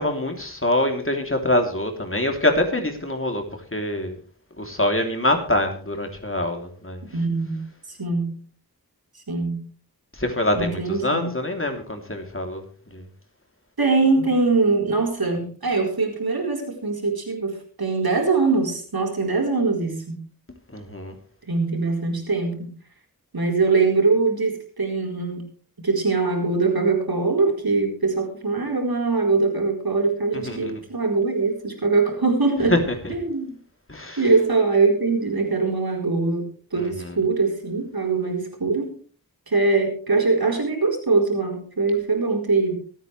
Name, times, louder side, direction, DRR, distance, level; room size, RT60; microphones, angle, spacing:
voice 1, 0.0-3.4 3.7-4.2 4.6-7.0 10.2-12.6 12.9-13.0 20.7-21.1 30.3-30.7 32.7-32.8 33.0-33.1 33.9-34.2 36.8-37.1, left 1 dB, 35° left, 4 dB, 3.1 m, -24 dB
voice 2, 7.1-8.4 9.3-9.7 10.5-11.3 13.8-20.2 21.5-22.7 23.3-25.5 25.8-32.8 33.1-33.5 34.2-38.9 39.5-42.7, right 3 dB, 75° right, 1 dB, 4.3 m, -22 dB
25.0 x 9.2 x 3.3 m, 0.41 s
wide cardioid pair, 55°, 37 cm